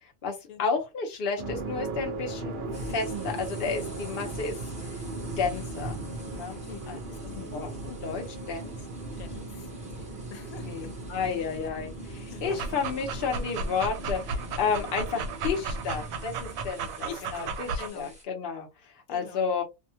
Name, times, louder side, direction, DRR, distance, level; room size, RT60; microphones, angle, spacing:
voice 1, 0.0-2.5 2.9-4.6 4.8-4.9 5.4-6.0 6.3-7.0 7.3-8.8 10.6-17.7 17.9-19.6, left 5 dB, 45° left, 0.9 m, -32 dB
sound 1, 1.4-16.7, right 2 dB, 55° right, 0.6 m, -38 dB
sound 2, 2.7-18.2, equal, 5° right, 0.6 m, -52 dB
voice 2, 6.7-7.5 9.2-10.9 11.3-11.5 12.3-12.6 17.0-18.1 19.1-19.4, left 7 dB, 85° left, 1.1 m, -45 dB
Dog, 12.4-17.9, right 4 dB, 80° right, 1.0 m, -34 dB
2.7 x 2.2 x 2.7 m
omnidirectional pair, 1.4 m